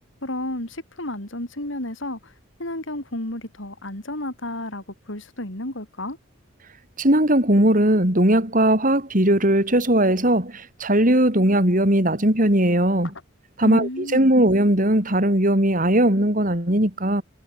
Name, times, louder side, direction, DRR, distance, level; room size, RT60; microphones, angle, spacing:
voice 1, 0.2-2.2 2.6-6.2 13.6-14.3, left 1 dB, 70° left, 6.0 m, -32 dB
voice 2, 7.0-13.1 13.6-17.2, right 1 dB, 40° right, 4.6 m, -19 dB
head